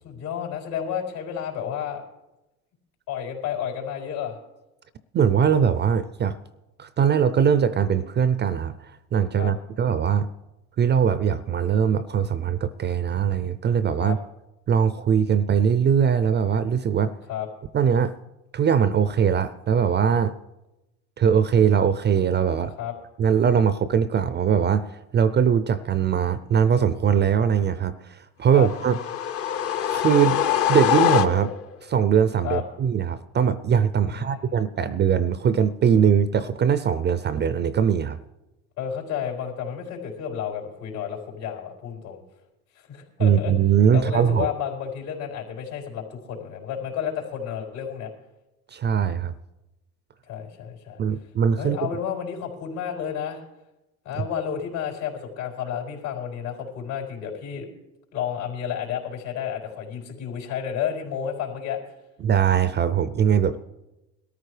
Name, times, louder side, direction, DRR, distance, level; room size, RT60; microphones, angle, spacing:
voice 1, 0.0-2.0 3.1-4.4 9.4-9.5 14.0-14.2 17.3-17.5 22.8-22.9 28.5-28.7 32.4-32.6 34.1-34.6 38.8-42.2 42.7-43.5 43.9-48.1 50.2-51.0 51.5-53.4 54.0-57.7 58.1-61.8, left 8 dB, 80° left, 0 dB, 4.3 m, -31 dB
voice 2, 5.1-6.4 6.8-10.3 10.8-14.2 14.7-17.1 17.7-18.1 18.5-20.3 21.2-22.7 23.2-29.0 29.9-30.4 30.7-31.5 31.8-38.2 43.2-44.5 48.7-49.3 51.0-51.9 54.1-54.2 62.2-63.6, right 7 dB, 25° right, 14 dB, 0.4 m, -21 dB
sound 1, 28.5-31.7, left 10 dB, 35° left, 0.6 m, -24 dB
21.0 x 13.5 x 3.3 m, 0.99 s
supercardioid pair, 95°, 44 cm